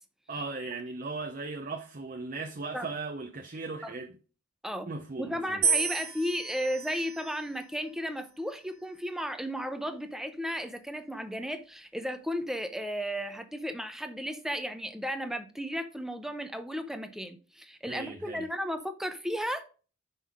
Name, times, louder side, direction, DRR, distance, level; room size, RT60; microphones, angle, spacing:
voice 1, 0.3-4.2 4.9-5.6 17.9-18.5, right 3 dB, 40° right, 0.7 m, -38 dB
voice 2, 5.2-19.7, equal, ahead, 0.7 m, -34 dB
sound 1, 5.6-7.8 8.6-9.2, right 6 dB, 20° right, 1.6 m, -32 dB
6.0 x 5.5 x 4.9 m
head